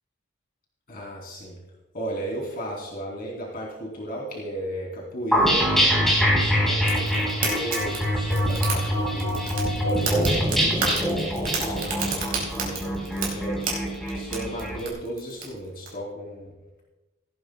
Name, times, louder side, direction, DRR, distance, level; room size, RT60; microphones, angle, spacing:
voice 1, 0.9-1.6 1.9-9.4 9.8-13.6 14.1-16.5, right 1 dB, 45° left, -3 dB, 3.1 m, -35 dB
sound 1, 5.3-14.8, equal, ahead, 4.1 m, -24 dB
Fire, 6.8-15.9, right 4 dB, 45° right, 4.8 m, -33 dB
17.5 x 15.5 x 2.3 m, 1.1 s
head